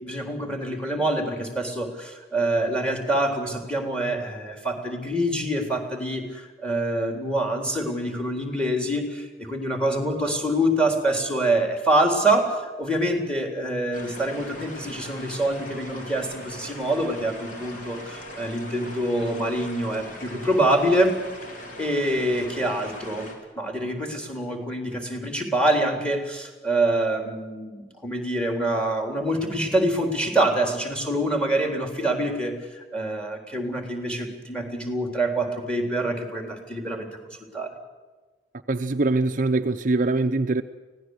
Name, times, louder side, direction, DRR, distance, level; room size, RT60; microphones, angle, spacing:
voice 1, 0.0-21.1 21.5-23.3 23.6-37.1 37.5-37.7, right 1 dB, 5° left, 3.7 m, -25 dB
sound 1, 13.9-23.4, left 1 dB, 45° left, 4.1 m, -40 dB
voice 2, 38.7-40.6, right 2 dB, 45° right, 0.7 m, -23 dB
24.5 x 17.5 x 8.0 m
head